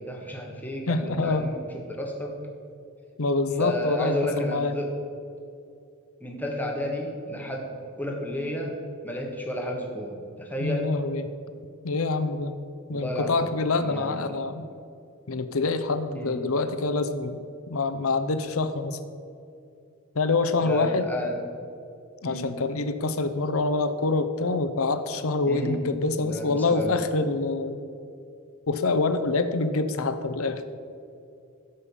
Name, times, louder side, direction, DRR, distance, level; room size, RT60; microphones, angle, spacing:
voice 1, 0.0-2.3 3.6-4.9 6.2-8.8 9.0-10.9 12.9-13.5 13.8-14.3 16.1-16.4 20.6-21.4 22.2-22.4 25.5-25.8 26.2-27.0, left 1 dB, 10° left, 0 dB, 1.3 m, -32 dB
voice 2, 0.9-1.5 3.2-4.8 10.6-11.3 11.8-12.6 12.9-14.7 15.3-17.4 17.7-19.0 20.1-21.1 22.2-27.8 28.7-30.6, left 3 dB, 70° left, 10 dB, 0.7 m, -26 dB
12.5 x 5.4 x 7.2 m, 2.5 s
head